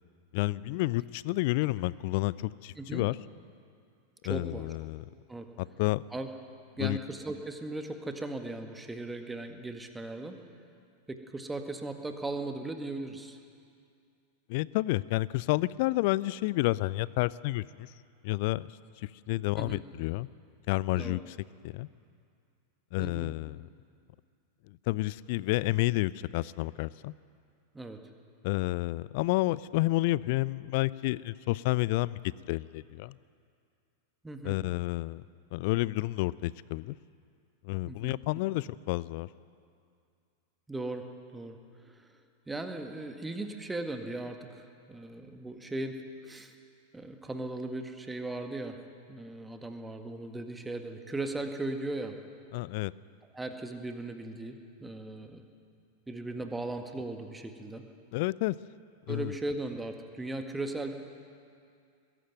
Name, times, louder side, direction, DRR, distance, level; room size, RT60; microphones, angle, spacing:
voice 1, 0.3-3.2 4.2-5.0 5.6-6.0 6.8-7.0 14.5-17.9 18.2-18.7 19.0-20.3 20.7-21.4 21.6-21.9 22.9-23.7 24.7-27.1 28.4-32.2 32.5-33.2 34.4-35.2 35.5-37.0 37.6-39.3 52.5-52.9 58.1-58.6 59.1-59.3, left 19 dB, 50° left, 20 dB, 0.4 m, -30 dB
voice 2, 4.3-4.7 5.3-5.5 6.1-6.3 6.8-10.4 11.1-13.4 19.6-19.8 21.0-21.2 23.0-23.3 27.7-28.0 34.2-34.6 37.9-38.2 40.7-41.0 41.3-41.6 41.8-42.1 42.5-46.5 46.9-48.8 49.1-52.2 53.3-55.4 56.1-57.8 59.1-60.9, right 2 dB, 10° right, 5 dB, 1.8 m, -37 dB
20.5 x 15.5 x 9.2 m, 2.4 s
figure-of-eight pair, 90°, 0 cm